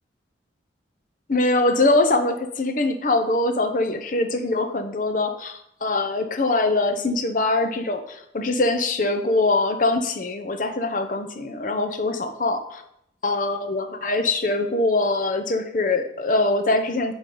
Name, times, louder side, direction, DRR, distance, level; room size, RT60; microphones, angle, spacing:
voice 1, 1.3-12.8 13.2-17.1, left 2 dB, 45° left, 7 dB, 0.8 m, -23 dB
9.1 x 5.2 x 3.9 m, 0.76 s
head